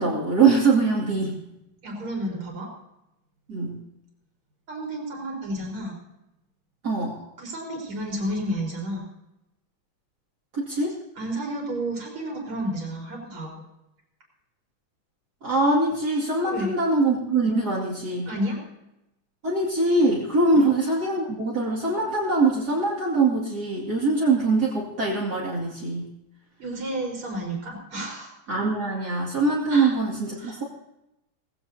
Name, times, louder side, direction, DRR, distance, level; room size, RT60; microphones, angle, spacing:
voice 1, 0.0-1.4 3.5-3.8 6.8-7.2 10.5-11.0 15.4-18.3 19.4-26.1 28.5-30.6, right 3 dB, 50° right, -5 dB, 2.9 m, -23 dB
voice 2, 1.8-2.7 4.7-6.0 7.1-9.0 11.2-13.6 16.4-16.7 18.3-18.6 20.5-20.7 26.6-28.3 29.7-29.9 30.4-30.6, right 1 dB, 85° right, -1 dB, 5.4 m, -31 dB
19.5 x 16.5 x 2.8 m, 0.88 s
omnidirectional pair, 2.3 m